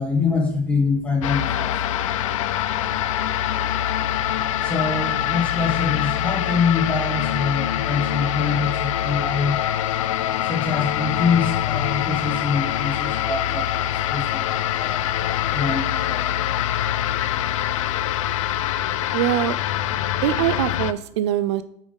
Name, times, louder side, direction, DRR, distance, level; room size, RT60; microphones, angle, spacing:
voice 1, 0.0-2.0 4.6-9.6 10.4-15.1 15.5-16.3, left 5 dB, 5° left, 1 dB, 1.3 m, -25 dB
sound 1, 1.2-20.9, left 11 dB, 90° left, 0.4 m, -24 dB
voice 2, 19.1-19.6 20.2-21.6, right 13 dB, 60° right, 13 dB, 0.4 m, -22 dB
8.9 x 3.7 x 5.2 m, 0.73 s
supercardioid pair, 160°, 16 cm